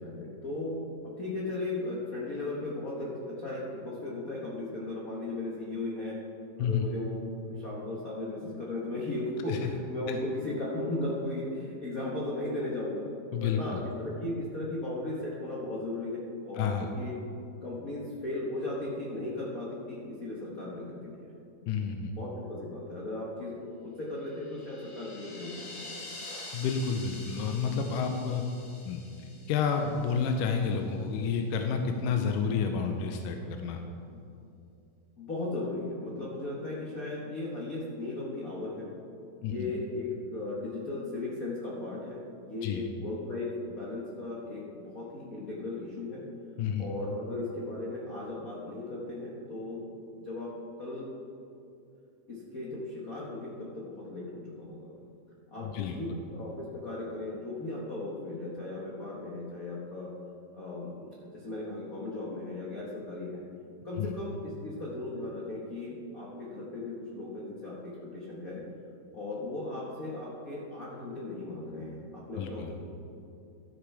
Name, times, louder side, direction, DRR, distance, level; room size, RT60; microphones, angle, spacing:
voice 1, 0.0-6.2 6.6-13.1 13.4-17.2 17.6-21.3 22.1-23.5 23.8-26.0 34.1-34.2 35.2-38.9 39.4-46.2 46.8-49.8 50.2-50.5 50.8-51.1 52.3-54.9 55.5-60.1 60.5-63.4 63.8-68.6 69.1-72.7, left 2 dB, 65° left, -5 dB, 0.8 m, -36 dB
voice 2, 13.3-13.8 16.6-16.9 21.7-22.1 26.5-28.4 28.9-29.0 29.5-33.8 39.4-39.7 42.6-42.8 46.6-46.9 55.6-56.0 64.0-64.1 72.4-72.7, left 6 dB, 85° left, 4 dB, 2.2 m, -30 dB
sound 1, 24.3-30.5, left 2 dB, 45° left, 1.6 m, -46 dB
13.5 x 6.6 x 4.8 m, 2.6 s
omnidirectional pair, 3.7 m